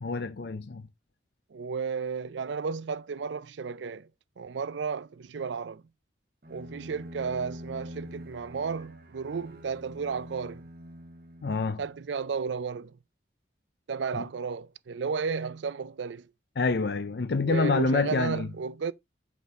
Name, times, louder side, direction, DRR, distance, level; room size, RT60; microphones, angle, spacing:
voice 1, 0.0-0.9 11.4-11.8 14.1-14.2 16.6-18.5, left 3 dB, 60° left, 0.5 m, -27 dB
voice 2, 1.5-4.1 4.4-5.8 6.5-10.7 11.8-13.0 13.9-16.3 17.5-18.9, right 5 dB, 80° right, 0.4 m, -33 dB
Bowed string instrument, 6.4-12.2, equal, 50° right, 1.1 m, -45 dB
6.5 x 5.4 x 3.5 m
head